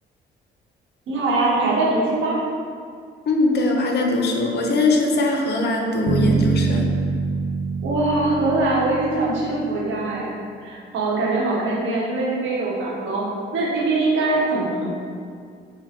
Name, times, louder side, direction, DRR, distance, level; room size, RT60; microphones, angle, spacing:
voice 1, 1.1-2.4 7.8-10.3 10.6-13.2 13.5-15.0, right 2 dB, 75° right, -5 dB, 1.0 m, -22 dB
voice 2, 3.3-6.9, left 2 dB, 55° left, 1 dB, 0.6 m, -21 dB
Bass guitar, 6.1-10.0, right 4 dB, 50° right, 0.4 m, -24 dB
4.6 x 2.1 x 3.5 m, 2.2 s
cardioid pair, 90°, 20 cm